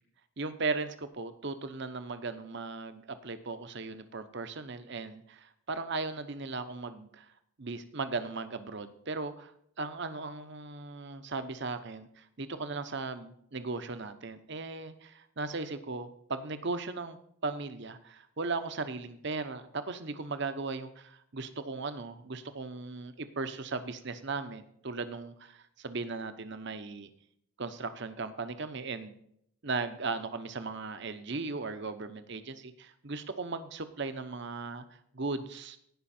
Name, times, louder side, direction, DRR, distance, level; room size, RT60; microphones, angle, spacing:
voice 1, 0.4-7.3 7.6-9.5 9.8-17.2 17.4-27.1 27.6-29.1 29.6-34.8 35.1-35.8, right 3 dB, 55° right, 10 dB, 0.9 m, -37 dB
17.5 x 5.8 x 4.3 m, 0.69 s
head